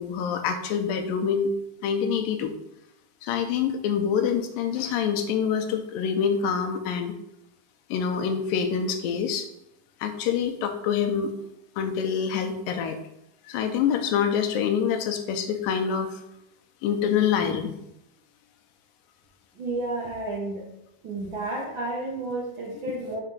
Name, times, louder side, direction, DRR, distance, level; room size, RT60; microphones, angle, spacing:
voice 1, 0.0-1.5 1.8-2.5 3.2-7.1 7.9-9.5 10.0-11.3 11.8-13.0 13.5-16.2 16.8-17.8, left 7 dB, 85° left, 5 dB, 2.4 m, -26 dB
voice 2, 19.6-20.6 21.0-23.2, right 2 dB, 80° right, -3 dB, 1.1 m, -31 dB
5.8 x 3.3 x 5.3 m, 0.83 s
omnidirectional pair, 3.9 m